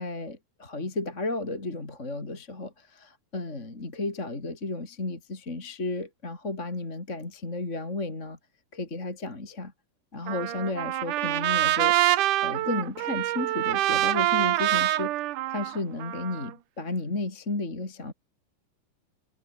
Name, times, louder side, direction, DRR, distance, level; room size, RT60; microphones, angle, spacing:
voice 1, 0.0-8.4 8.7-9.7 10.1-12.0 12.4-15.2 15.5-18.1, left 2 dB, 20° left, 3.3 m, -33 dB
Trumpet, 10.3-16.5, right 15 dB, 85° right, 1.8 m, -26 dB
omnidirectional pair, 5.0 m